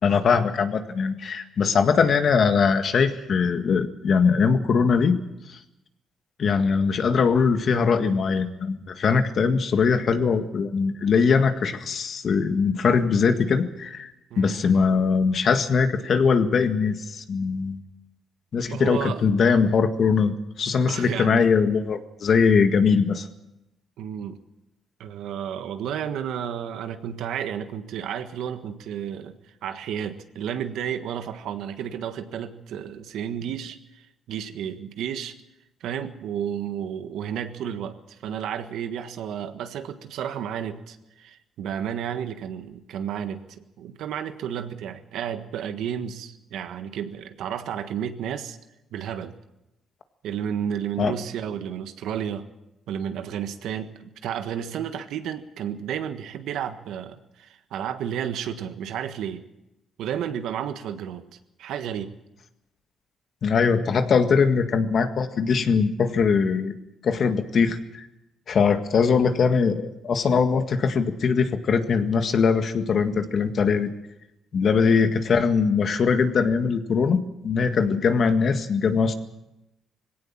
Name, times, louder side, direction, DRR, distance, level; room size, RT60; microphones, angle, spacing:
voice 1, 0.0-5.2 5.5-5.6 6.4-14.1 14.4-17.8 18.5-23.3 51.0-51.1 63.4-66.7 67.0-68.1 68.5-73.9 74.5-79.1, left 5 dB, 55° left, 8 dB, 1.8 m, -21 dB
voice 2, 18.7-19.2 20.9-21.5 24.0-24.4 25.0-29.3 29.6-35.3 35.8-43.4 43.8-48.6 48.9-49.4 50.2-52.5 52.9-59.4 60.0-61.3 61.6-62.1 74.7-75.0, right 9 dB, 80° right, 8 dB, 1.5 m, -32 dB
20.5 x 17.0 x 7.4 m, 0.93 s
cardioid pair, 90°, 0 cm